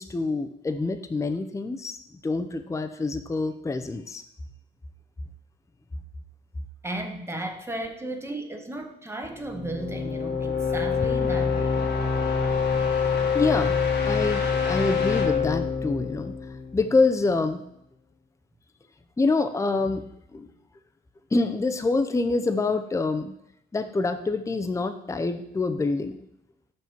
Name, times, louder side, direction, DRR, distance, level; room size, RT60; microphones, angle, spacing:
voice 1, 0.0-2.0 2.2-4.2 13.3-13.8 14.1-16.3 16.7-17.6 19.2-20.0 20.3-20.5 21.3-23.3 23.7-26.2, left 3 dB, 15° left, 7 dB, 0.6 m, -26 dB
voice 2, 6.8-11.9, right 1 dB, 15° right, 3 dB, 1.0 m, -35 dB
sound 1, 9.4-17.2, left 5 dB, 60° left, 1.3 m, -26 dB
6.1 x 5.8 x 4.6 m, 0.74 s
cardioid pair, 90°, 20 cm